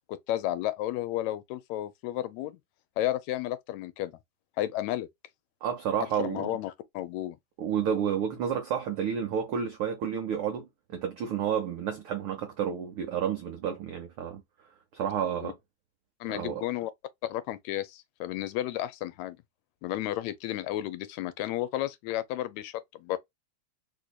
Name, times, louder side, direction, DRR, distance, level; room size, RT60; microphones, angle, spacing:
voice 1, 0.1-2.6 3.0-4.1 4.6-5.1 6.2-7.4 15.4-15.5 16.2-16.9 17.2-19.4 19.8-23.2, left 14 dB, 80° left, 1.8 m, -32 dB
voice 2, 5.6-6.5 7.6-14.4 14.9-15.6 16.3-16.7, right 8 dB, 85° right, 1.2 m, -30 dB
4.4 x 2.7 x 2.2 m
omnidirectional pair, 3.3 m